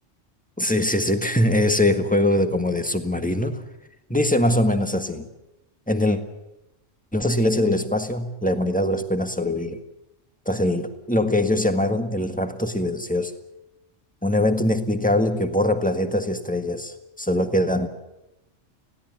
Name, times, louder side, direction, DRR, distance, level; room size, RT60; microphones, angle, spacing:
voice 1, 0.6-3.6 4.1-5.3 5.9-6.2 7.1-9.8 10.4-13.3 14.2-17.9, left 1 dB, 5° left, 7 dB, 1.6 m, -22 dB
20.5 x 16.5 x 9.6 m, 0.94 s
omnidirectional pair, 1.3 m